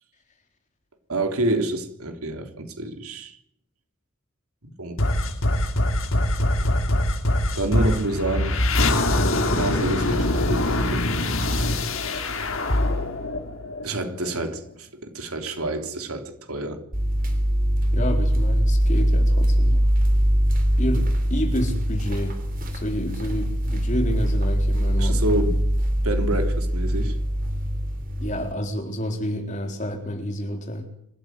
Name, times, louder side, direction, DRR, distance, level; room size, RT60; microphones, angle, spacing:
voice 1, 1.1-3.4 4.6-5.0 7.6-8.6 9.6-11.1 11.5-11.7 13.8-16.8 25.0-25.6 26.0-27.1, right 1 dB, 90° right, 3.5 m, -28 dB
sound 1, 5.0-14.3, left 1 dB, 70° left, 3.0 m, -23 dB
sound 2, 16.9-28.5, equal, 40° right, 3.3 m, -22 dB
voice 2, 17.9-19.9 20.8-22.4 22.7-25.3 28.2-30.9, equal, 35° left, 4.0 m, -29 dB
26.0 x 14.0 x 9.4 m
head